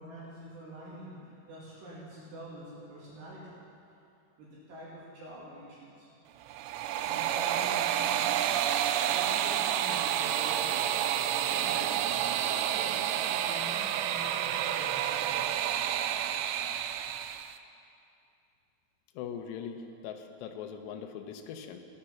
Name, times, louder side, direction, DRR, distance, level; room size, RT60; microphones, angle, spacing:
voice 1, 0.0-3.6 4.4-6.4 6.9-8.6 9.1-10.9 11.5-11.9 12.7-15.5, right 1 dB, 60° right, -8 dB, 4.4 m, -46 dB
sound 1, 6.4-17.6, right 10 dB, 85° right, 2.9 m, -29 dB
voice 2, 19.2-21.8, left 7 dB, 75° left, 5 dB, 2.6 m, -41 dB
18.0 x 10.0 x 5.9 m, 2.6 s
omnidirectional pair, 5.8 m